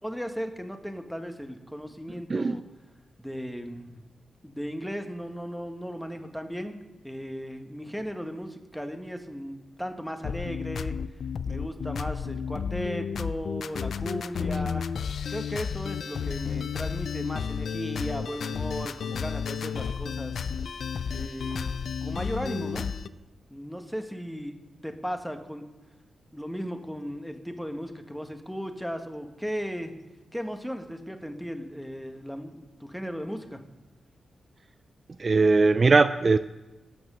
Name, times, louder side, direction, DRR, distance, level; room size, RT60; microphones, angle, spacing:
voice 1, 0.0-2.6 3.2-4.0 4.4-11.0 11.5-14.9 15.3-20.5 21.1-22.9 23.5-24.6 24.8-25.6 26.3-29.9 30.3-33.6, equal, ahead, 6 dB, 1.5 m, -36 dB
sound 1, 10.2-23.1, left 6 dB, 75° left, 0.4 m, -32 dB
voice 2, 35.2-36.4, right 3 dB, 45° right, 12 dB, 0.4 m, -20 dB
16.0 x 6.3 x 6.2 m, 1.1 s
cardioid pair, 55°, 0 cm